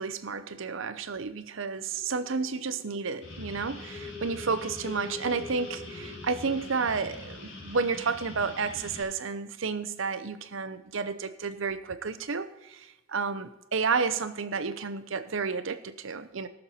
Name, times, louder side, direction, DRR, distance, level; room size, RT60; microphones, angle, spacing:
voice 1, 0.0-16.5, right 5 dB, 65° right, 13 dB, 0.7 m, -31 dB
sound 1, 1.9-8.4, left 4 dB, 10° left, 2.5 m, -46 dB
sound 2, 3.2-9.0, left 2 dB, 65° left, 4.0 m, -44 dB
18.0 x 6.5 x 4.3 m, 1.0 s
head